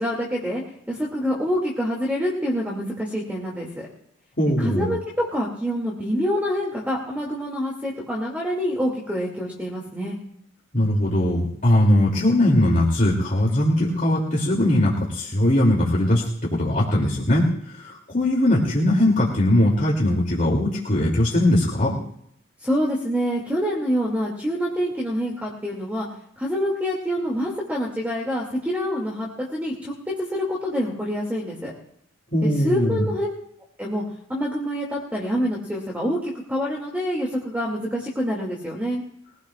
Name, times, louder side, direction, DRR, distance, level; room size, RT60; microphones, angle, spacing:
voice 1, 0.0-3.9 4.6-10.2 22.6-26.1 26.4-29.9 30.2-31.7 32.4-33.3 33.8-34.0 34.3-39.0, equal, 10° right, -3 dB, 2.4 m, -26 dB
voice 2, 4.4-4.9 10.7-16.2 16.5-22.0 32.3-33.0, left 1 dB, 40° left, -4 dB, 2.8 m, -20 dB
22.5 x 16.0 x 2.5 m, 0.72 s
head